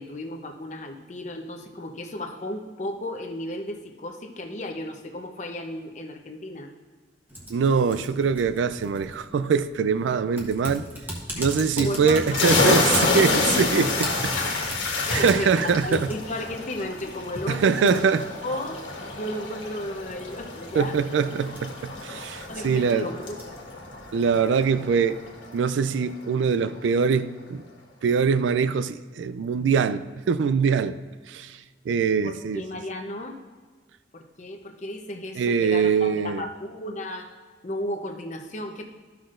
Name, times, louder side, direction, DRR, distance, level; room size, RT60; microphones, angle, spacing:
voice 1, 0.0-6.7 11.3-11.4 11.8-13.8 14.3-14.7 15.1-18.1 18.4-18.8 19.1-21.0 22.1-22.2 22.5-23.6 32.2-33.4 34.1-37.3 37.6-38.8, left 1 dB, 40° left, 0.7 m, -34 dB
Typing, 7.3-25.3, equal, 10° right, 1.2 m, -40 dB
voice 2, 7.5-10.9 11.4-14.4 15.1-16.1 17.5-18.2 20.7-23.1 24.1-25.2 25.5-27.6 28.0-31.0 31.3-31.6 31.9-32.6 35.4-36.4, right 6 dB, 85° right, 0.3 m, -23 dB
sound 1, 12.3-25.6, left 3 dB, 85° left, 1.5 m, -28 dB
13.5 x 5.8 x 2.5 m
head